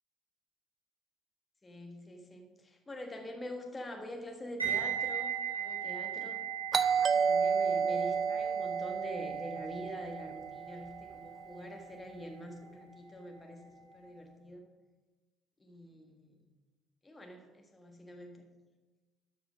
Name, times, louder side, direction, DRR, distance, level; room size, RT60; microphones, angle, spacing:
voice 1, 1.6-6.4 7.0-14.6 15.6-16.4 17.0-18.4, equal, 20° left, 4 dB, 1.6 m, -45 dB
sound 1, 4.6-13.6 13.8-14.1, right 8 dB, 85° right, 2.0 m, -39 dB
Doorbell, 6.7-11.3, right 6 dB, 35° right, 0.3 m, -31 dB
12.5 x 4.9 x 5.2 m, 1.2 s
figure-of-eight pair, 55°, 0 cm